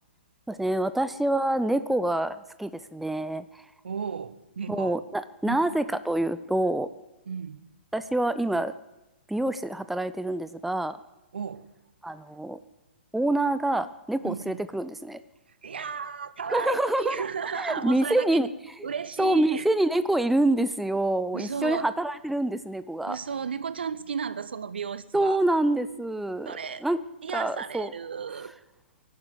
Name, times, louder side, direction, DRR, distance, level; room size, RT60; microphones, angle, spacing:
voice 1, 0.5-3.6 4.7-6.9 7.9-8.7 9.3-11.0 12.0-12.6 13.1-15.2 16.5-17.2 17.6-18.5 18.8-18.9 19.2-23.2 25.1-26.5 26.8-27.0 27.3-27.9, right 1 dB, ahead, 13 dB, 0.6 m, -26 dB
voice 2, 3.8-5.0 5.4-5.8 7.3-7.7 11.3-11.7 14.2-14.6 15.5-18.5 18.8-19.7 21.3-21.9 23.1-25.4 26.4-26.9 27.2-28.5, right 6 dB, 65° right, 16 dB, 1.2 m, -34 dB
23.0 x 12.0 x 9.6 m, 1.0 s
figure-of-eight pair, 115°, 6 cm